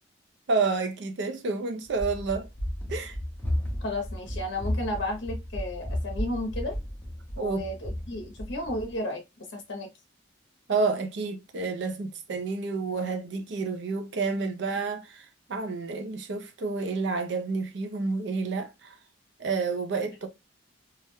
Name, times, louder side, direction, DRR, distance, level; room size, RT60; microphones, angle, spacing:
voice 1, 0.5-2.5 2.9-3.2 7.4-7.7 10.7-19.0 19.4-20.3, right 4 dB, 60° right, 0.4 m, -29 dB
Run, 1.9-8.9, left 1 dB, 10° left, 0.5 m, -34 dB
voice 2, 3.8-6.8 7.4-9.2 9.5-9.9, left 1 dB, 60° left, 0.6 m, -33 dB
2.3 x 2.1 x 3.0 m
head